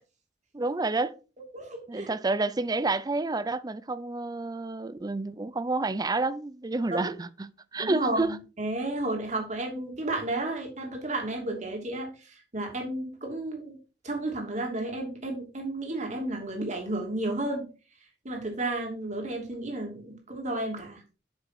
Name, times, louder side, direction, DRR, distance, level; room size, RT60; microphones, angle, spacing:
voice 1, 0.5-1.2 1.9-8.4, right 3 dB, 20° right, 0.5 m, -29 dB
voice 2, 1.5-2.1 6.9-7.1 7.8-13.8 14.0-17.7 18.2-21.0, right 2 dB, 45° right, 2.9 m, -32 dB
8.2 x 6.5 x 4.4 m
head